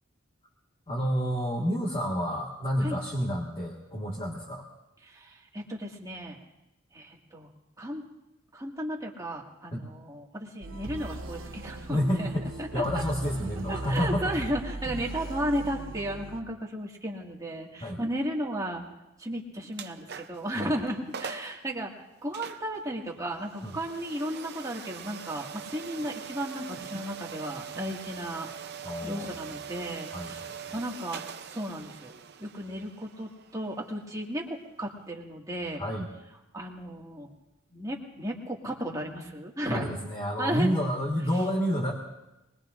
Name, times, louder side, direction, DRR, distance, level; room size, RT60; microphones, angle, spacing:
voice 1, 0.9-4.6 9.7-9.8 11.9-14.4 17.8-18.0 20.6-20.7 23.6-23.8 28.8-29.4 30.1-30.5 35.8-36.1 39.7-41.9, equal, 30° left, -2 dB, 1.7 m, -29 dB
voice 2, 5.0-6.4 6.9-7.5 7.8-8.0 8.5-12.8 13.7-18.8 19.2-21.9 22.2-28.5 29.0-31.2 31.5-32.1 32.4-35.8 36.5-37.3 37.7-40.0 40.4-40.7 41.3-41.4, equal, 15° right, -1 dB, 2.0 m, -34 dB
sound 1, 10.6-16.4, right 2 dB, 70° right, 1.1 m, -38 dB
sound 2, 19.7-20.5 20.9-21.0 21.1-21.6 22.3-35.1, right 7 dB, 55° right, 0.7 m, -43 dB
23.5 x 20.5 x 2.6 m, 0.95 s
head